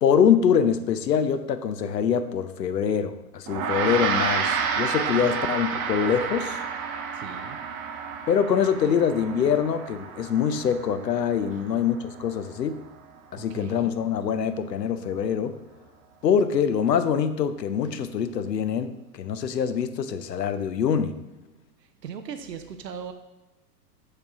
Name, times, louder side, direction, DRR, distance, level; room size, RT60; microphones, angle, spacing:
voice 1, 0.0-6.6 8.3-12.8 13.3-15.6 16.2-21.2, left 7 dB, 85° left, 10 dB, 0.7 m, -24 dB
Gong, 3.5-13.1, right 6 dB, 60° right, 1.1 m, -30 dB
voice 2, 7.1-7.6 11.5-11.7 13.4-13.9 21.8-23.1, right 7 dB, 85° right, 8 dB, 0.8 m, -39 dB
6.6 x 6.3 x 3.6 m, 1.1 s
hypercardioid pair, 110°, 48 cm